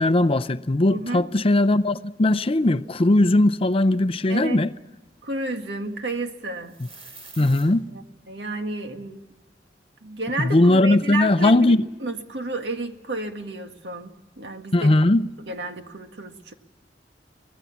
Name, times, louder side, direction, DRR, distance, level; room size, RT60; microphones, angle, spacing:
voice 1, 0.0-4.7 7.4-7.8 10.4-11.9 14.7-15.2, left 1 dB, 35° left, 0.6 m, -19 dB
voice 2, 0.9-1.3 4.3-4.6 5.2-6.8 7.9-9.2 10.0-15.0 15.4-16.5, right 2 dB, 70° right, 1.9 m, -32 dB
sound 1, 6.6-7.6, right 3 dB, 35° right, 7.3 m, -44 dB
24.0 x 18.0 x 7.2 m
head